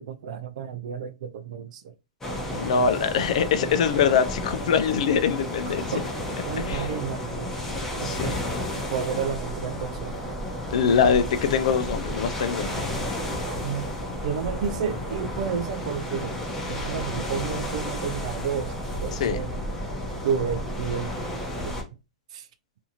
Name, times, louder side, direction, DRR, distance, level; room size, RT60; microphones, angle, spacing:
voice 1, 0.0-1.9 5.7-6.1 6.5-7.5 8.0-8.4 8.9-10.3 13.6-13.9 14.2-16.4 16.7-18.7 19.0-19.5 20.2-21.1 21.6-21.8 22.3-22.5, right 7 dB, 70° right, 0.4 m, -31 dB
sound 1, 2.2-21.8, left 1 dB, 10° left, 0.8 m, -32 dB
voice 2, 2.5-5.9 6.6-6.9 8.0-8.3 10.7-12.8 19.1-19.4, left 7 dB, 70° left, 0.4 m, -23 dB
2.6 x 2.4 x 2.8 m
hypercardioid pair, 135°, 4 cm